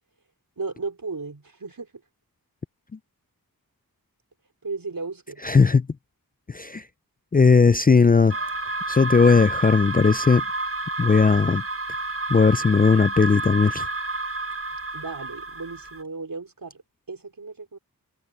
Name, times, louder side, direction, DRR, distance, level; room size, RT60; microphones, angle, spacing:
voice 1, 0.6-1.9 4.6-5.4 14.9-16.8 17.1-17.8, right 4 dB, 65° right, 5.0 m, -35 dB
voice 2, 5.4-5.9 6.5-6.8 7.3-8.4 8.9-10.4 11.0-11.6 12.3-13.9, left 5 dB, 25° left, 0.4 m, -17 dB
sound 1, 8.3-16.0, right 2 dB, 35° right, 1.0 m, -30 dB
wide cardioid pair, 50°, 36 cm